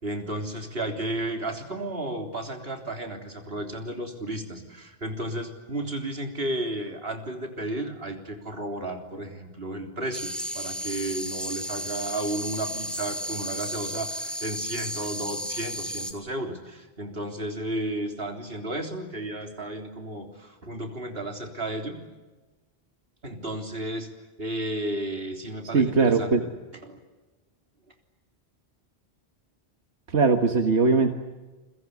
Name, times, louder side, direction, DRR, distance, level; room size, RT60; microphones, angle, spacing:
voice 1, 0.0-22.0 23.2-24.1 24.4-26.5 26.8-27.0, right 1 dB, 60° right, 4 dB, 3.9 m, -33 dB
sound 1, 10.1-16.1, equal, ahead, 2.7 m, -33 dB
voice 2, 25.7-26.4 30.1-31.1, right 4 dB, 90° right, 6 dB, 1.8 m, -20 dB
29.0 x 23.5 x 8.3 m, 1.2 s
omnidirectional pair, 1.1 m